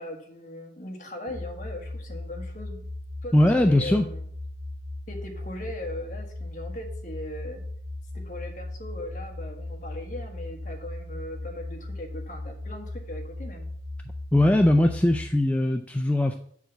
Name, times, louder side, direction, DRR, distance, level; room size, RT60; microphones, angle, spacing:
voice 1, 0.0-2.9 3.2-4.2 5.1-7.6 8.1-13.7, left 1 dB, 45° left, 3 dB, 1.4 m, -39 dB
sound 1, 1.3-15.3, left 2 dB, 70° right, 3.0 m, -37 dB
voice 2, 3.3-4.0 14.3-16.3, left 1 dB, 10° left, 4 dB, 0.3 m, -20 dB
7.7 x 4.8 x 5.6 m, 0.63 s
head